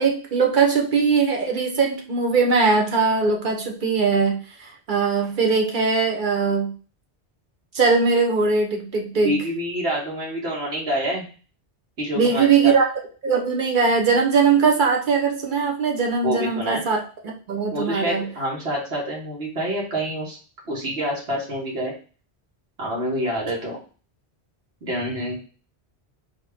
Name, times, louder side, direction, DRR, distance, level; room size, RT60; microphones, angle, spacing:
voice 1, 0.0-6.7 7.7-9.3 12.2-12.9 13.2-17.0 17.5-18.2, right 5 dB, 50° right, 1 dB, 1.0 m, -20 dB
voice 2, 9.1-11.2 12.0-12.7 16.2-16.8 17.7-20.4 20.7-21.9 22.8-23.8 24.8-25.4, equal, 80° right, -4 dB, 1.7 m, -27 dB
4.2 x 2.9 x 3.4 m, 0.38 s
omnidirectional pair, 1.1 m